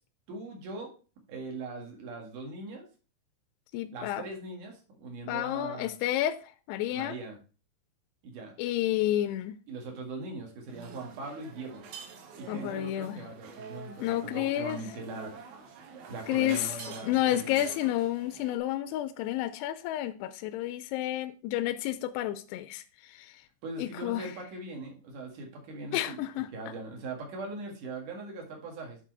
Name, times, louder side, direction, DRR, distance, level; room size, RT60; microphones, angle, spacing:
voice 1, 0.3-0.9 1.3-2.9 3.9-5.9 6.9-7.4 8.2-8.5 9.7-11.8 12.4-15.3 15.9-17.6 23.6-26.3 26.5-29.0, right 3 dB, 55° right, 2.9 m, -41 dB
voice 2, 3.7-4.2 5.3-6.4 6.7-7.2 8.6-9.6 12.5-13.2 14.0-14.8 16.3-16.7 17.0-23.3 23.8-24.3 25.9-26.5, left 13 dB, 85° left, 2.5 m, -30 dB
sound 1, 10.7-18.6, right 5 dB, 70° right, 3.2 m, -46 dB
9.2 x 4.1 x 4.6 m
omnidirectional pair, 5.1 m